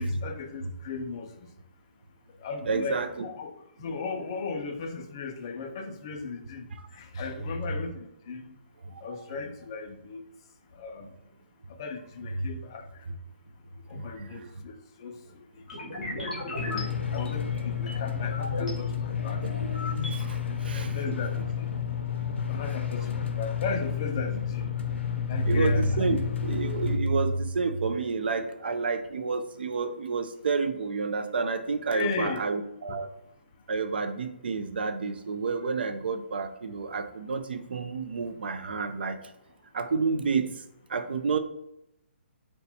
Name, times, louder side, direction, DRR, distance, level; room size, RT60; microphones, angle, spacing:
voice 1, 0.0-1.5 2.4-8.5 9.0-10.2 10.7-11.1 11.8-12.9 13.9-16.2 16.7-19.6 20.7-21.7 22.5-24.7 25.3-26.2 31.9-32.5 32.9-33.0, left 4 dB, 25° left, 6 dB, 0.3 m, -37 dB
voice 2, 2.7-3.1 14.2-14.5 19.4-19.5 20.3-21.2 25.4-33.1 33.7-39.2 39.7-40.5 40.9-41.4, right 4 dB, 60° right, 8 dB, 0.5 m, -29 dB
sound 1, 15.7-18.7 19.2-20.2, left 1 dB, 40° left, 1.4 m, -37 dB
sound 2, 16.6-27.0, left 8 dB, 90° left, 0.5 m, -31 dB
4.1 x 2.3 x 4.1 m, 0.81 s
hypercardioid pair, 170°, 6 cm